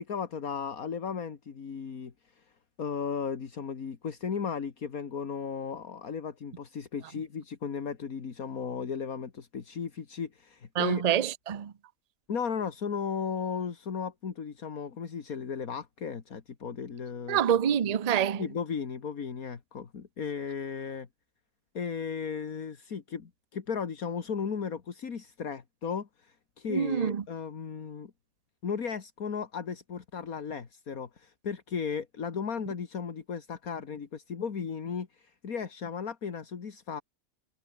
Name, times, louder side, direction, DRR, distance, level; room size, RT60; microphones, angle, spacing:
voice 1, 0.0-2.5 2.8-11.0 12.3-17.4 18.4-21.1 21.7-28.1 28.6-37.0, left 6 dB, 70° left, 2.2 m, -35 dB
voice 2, 10.8-11.7 17.3-18.4 26.7-27.2, right 9 dB, 40° right, 0.6 m, -26 dB
omnidirectional pair, 1.5 m